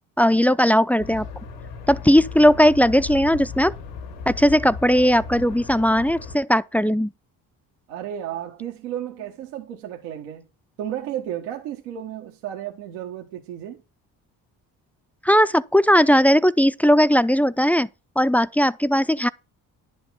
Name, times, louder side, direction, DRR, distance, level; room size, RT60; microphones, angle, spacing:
voice 1, 0.2-1.3 1.9-3.7 4.3-7.1 15.2-17.9 18.2-19.3, equal, 5° left, 0.4 m, -18 dB
sound 1, 1.0-6.4, left 4 dB, 90° left, 2.2 m, -36 dB
voice 2, 7.9-10.5 10.8-13.8, right 11 dB, 85° right, 1.4 m, -33 dB
10.5 x 5.3 x 5.6 m
hypercardioid pair, 60°, 46 cm